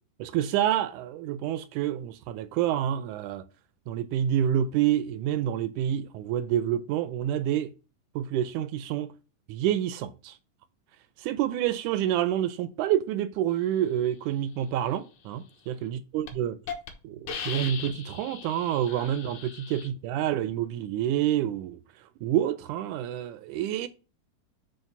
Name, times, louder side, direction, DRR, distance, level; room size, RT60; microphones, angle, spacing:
voice 1, 0.2-3.4 3.9-7.7 8.1-9.1 9.5-10.4 11.2-16.6 17.0-21.8 22.2-23.9, right 11 dB, 80° right, 1.8 m, -28 dB
Hiss, 15.7-15.9 16.3-16.4 16.7-16.9 17.3-19.9, left 7 dB, 65° left, 2.4 m, -38 dB
9.0 x 3.1 x 5.9 m
omnidirectional pair, 3.9 m